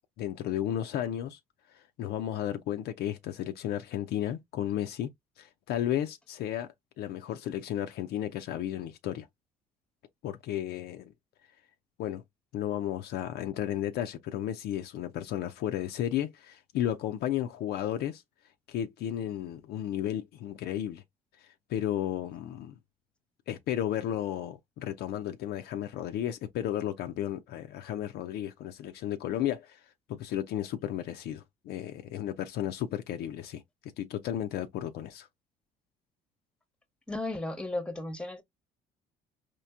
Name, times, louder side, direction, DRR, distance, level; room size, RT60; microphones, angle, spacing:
voice 1, 0.2-1.4 1.7-5.1 5.4-6.7 7.0-9.3 10.2-11.1 12.0-12.2 12.5-18.2 18.7-21.0 21.4-22.7 23.5-29.8 30.1-33.6 34.0-35.3, left 11 dB, 60° left, 0.4 m, -33 dB
voice 2, 37.1-38.4, left 2 dB, 5° left, 0.9 m, -34 dB
4.4 x 2.5 x 2.3 m
hypercardioid pair, 55°, 19 cm